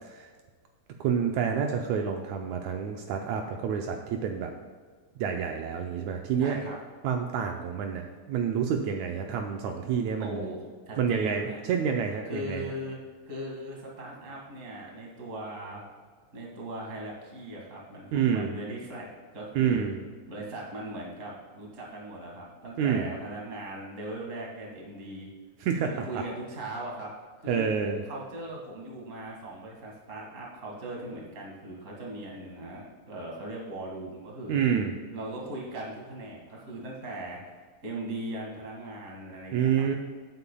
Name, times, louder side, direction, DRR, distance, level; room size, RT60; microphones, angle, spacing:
voice 1, 1.0-4.5 5.2-6.6 7.0-10.5 11.0-12.6 18.1-18.5 19.6-20.0 22.8-23.1 25.6-26.2 27.5-28.0 34.5-34.9 39.5-40.0, right 7 dB, 80° right, 3 dB, 1.9 m, -28 dB
voice 2, 6.4-6.8 10.2-11.6 12.3-13.0 13.2-15.8 16.3-19.1 19.3-19.8 20.3-25.3 25.9-27.1 27.4-27.7 28.0-34.6 35.1-40.0, right 1 dB, 30° right, -2 dB, 1.9 m, -39 dB
15.5 x 8.0 x 2.3 m, 1.5 s
omnidirectional pair, 3.4 m